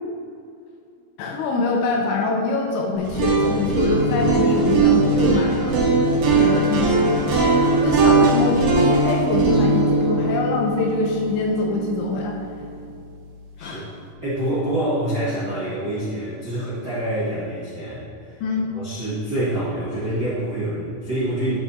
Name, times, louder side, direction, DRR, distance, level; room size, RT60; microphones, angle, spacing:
voice 1, 1.2-7.4 7.8-12.4 13.6-13.8 18.4-18.7, left 3 dB, 80° left, 0 dB, 2.8 m, -24 dB
sound 1, 3.0-13.0, right 3 dB, 55° right, 3.2 m, -20 dB
voice 2, 13.6-13.9 14.2-18.4 18.7-21.6, right 1 dB, 85° right, -12 dB, 0.9 m, -26 dB
12.5 x 4.8 x 4.2 m, 2.4 s
omnidirectional pair, 6.0 m